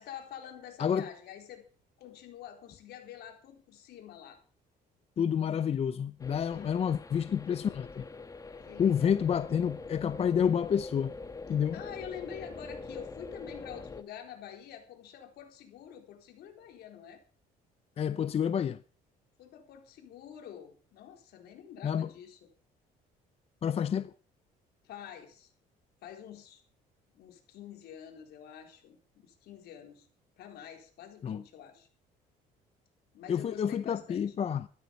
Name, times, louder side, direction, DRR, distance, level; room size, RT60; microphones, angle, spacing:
voice 1, 0.0-1.6 2.0-4.4 6.5-7.0 8.7-9.2 11.7-17.2 19.4-22.5 24.8-25.5 26.0-26.6 27.1-30.1 30.4-31.9 33.1-34.3, left 9 dB, 75° left, 4.1 m, -47 dB
voice 2, 5.2-8.0 8.8-11.1 11.5-11.8 18.0-18.8 21.8-22.1 23.6-24.1 31.2-31.4 33.3-34.7, left 8 dB, 35° left, 0.6 m, -29 dB
sound 1, 6.2-14.0, left 3 dB, 20° left, 1.4 m, -44 dB
14.0 x 12.5 x 5.3 m
cardioid pair, 110°, 17 cm